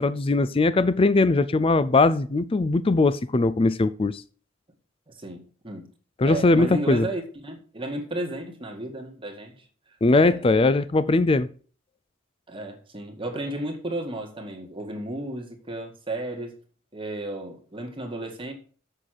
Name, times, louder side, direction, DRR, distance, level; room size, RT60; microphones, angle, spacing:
voice 1, 0.0-4.2 6.2-7.1 10.0-11.5, left 3 dB, 30° left, 0.4 m, -20 dB
voice 2, 5.1-5.9 6.2-9.7 10.1-10.5 12.5-16.6 16.9-18.5, right 1 dB, 25° right, 1.9 m, -33 dB
7.4 x 6.6 x 7.8 m
head